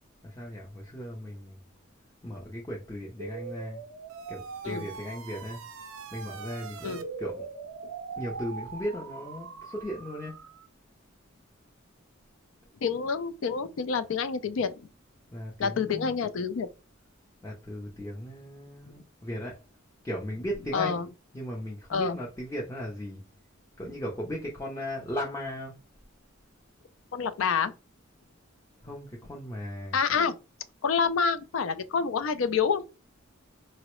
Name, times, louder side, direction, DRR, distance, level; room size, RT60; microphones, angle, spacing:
voice 1, 0.2-1.6 2.2-3.8 4.3-5.6 6.1-7.5 8.2-10.4 15.3-16.2 17.4-19.6 20.0-21.0 21.3-23.2 23.8-25.8 28.8-30.0, equal, 15° left, 0.5 m, -37 dB
sound 1, 3.2-10.7, right 5 dB, 90° right, 0.5 m, -41 dB
voice 2, 12.8-14.7 15.6-16.7 20.7-21.1 21.9-22.2 27.1-27.7 29.9-30.4 30.8-32.8, left 6 dB, 75° left, 0.4 m, -27 dB
3.7 x 2.0 x 3.0 m
head